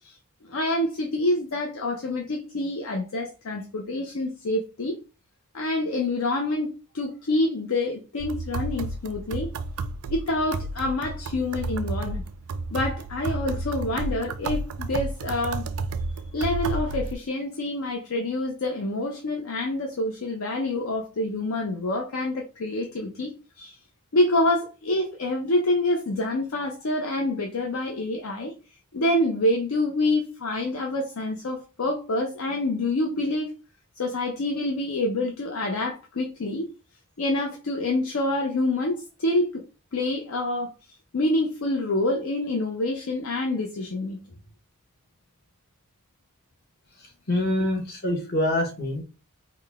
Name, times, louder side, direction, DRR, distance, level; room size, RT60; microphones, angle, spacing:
voice 1, 0.5-5.0 5.5-6.7 6.9-9.5 10.1-12.2 12.7-15.7 16.3-23.8 24.1-28.5 28.9-33.5 34.0-36.7 37.2-39.6 39.9-40.7 41.1-44.2, left 2 dB, 75° left, 0.6 m, -27 dB
sound 1, 8.2-17.1, right 3 dB, 80° right, 0.4 m, -31 dB
voice 2, 47.0-49.0, left 1 dB, 45° left, 1.1 m, -26 dB
3.7 x 2.2 x 3.4 m
head